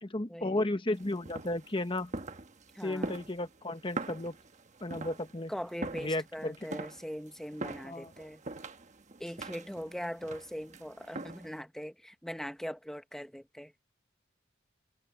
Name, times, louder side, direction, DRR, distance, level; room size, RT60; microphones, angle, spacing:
voice 1, 0.0-2.1 2.8-4.4 4.8-5.5 5.9-6.7 7.8-8.1, left 1 dB, 25° left, 1.2 m, -34 dB
sound 1, 0.9-11.6, right 2 dB, 40° right, 1.2 m, -43 dB
voice 2, 2.7-3.2 5.5-8.4 9.2-13.7, equal, 5° left, 1.0 m, -41 dB
head